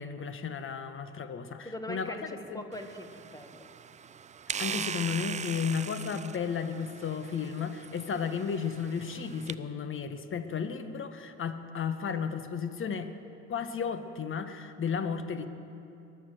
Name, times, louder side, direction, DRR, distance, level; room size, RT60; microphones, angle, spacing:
voice 1, 0.0-2.2 2.5-2.6 4.6-13.1 13.5-15.5, left 6 dB, 40° left, 10 dB, 1.2 m, -33 dB
voice 2, 1.6-3.7, equal, 10° left, 6 dB, 1.7 m, -41 dB
sound 1, 2.7-9.5, right 7 dB, 25° right, 0.4 m, -40 dB
21.0 x 7.1 x 7.7 m, 2.7 s
hypercardioid pair, 65°, 31 cm